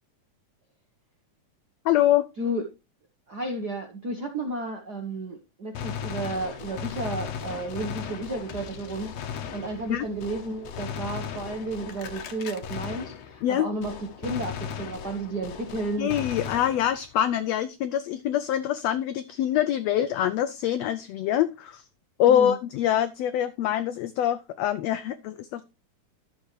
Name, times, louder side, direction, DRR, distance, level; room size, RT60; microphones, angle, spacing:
voice 1, 1.8-2.2 9.9-10.1 13.4-13.7 16.0-21.8 22.2-25.6, left 11 dB, 90° left, 11 dB, 1.4 m, -25 dB
voice 2, 3.3-13.9 14.2-16.1 22.2-22.6, right 2 dB, 65° right, 2 dB, 1.0 m, -32 dB
Gunshot gunfire, 5.7-13.5 13.8-17.2, left 8 dB, 65° left, 1.9 m, -37 dB
12.0 x 7.1 x 3.2 m, 0.27 s
omnidirectional pair, 3.6 m